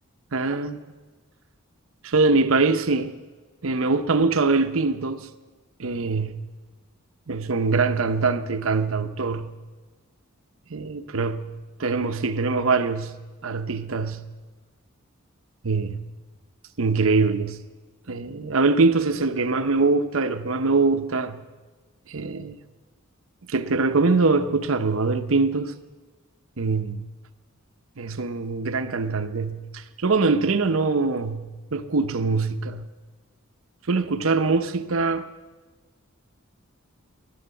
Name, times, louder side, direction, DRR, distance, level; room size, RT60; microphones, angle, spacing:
voice 1, 0.3-0.8 2.0-3.1 3.6-5.3 5.8-6.4 7.3-9.5 10.7-11.5 11.8-13.2 13.4-14.3 15.6-16.0 16.8-17.6 18.1-21.4 22.1-22.6 23.5-25.7 26.6-27.1 28.0-32.9 33.9-35.2, right 3 dB, 65° right, 0.8 m, -23 dB
13.0 x 12.0 x 8.2 m
head